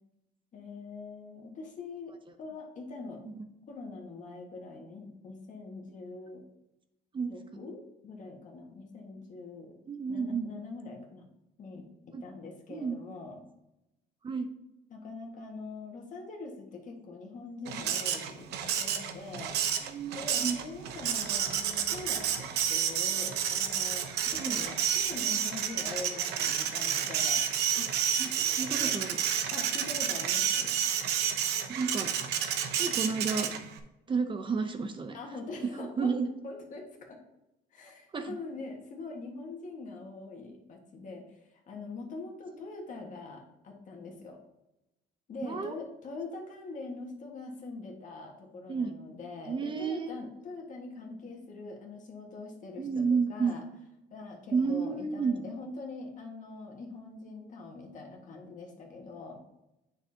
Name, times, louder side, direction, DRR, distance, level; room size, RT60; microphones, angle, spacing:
voice 1, 0.5-3.2 3.7-6.4 7.3-9.8 10.1-11.2 11.6-13.4 14.9-19.6 20.1-27.4 28.8-28.9 29.5-30.8 35.1-36.1 36.4-37.2 37.7-44.4 45.3-53.6 54.1-59.4, left 3 dB, 50° left, 1 dB, 1.6 m, -43 dB
voice 2, 9.9-10.5 12.1-12.2 12.7-13.0 14.2-14.5 19.8-20.6 24.4-24.6 27.8-27.9 28.2-29.2 31.7-32.1 32.7-33.5 34.1-35.2 35.6-36.3 38.1-38.4 45.4-45.7 48.7-48.9 49.5-50.1 52.8-53.6 54.5-55.3, right 5 dB, 30° right, 7 dB, 0.6 m, -31 dB
Printer, 17.7-33.8, right 8 dB, 80° right, 0.7 m, -30 dB
7.4 x 6.2 x 2.8 m, 0.90 s
cardioid pair, 110°, 17 cm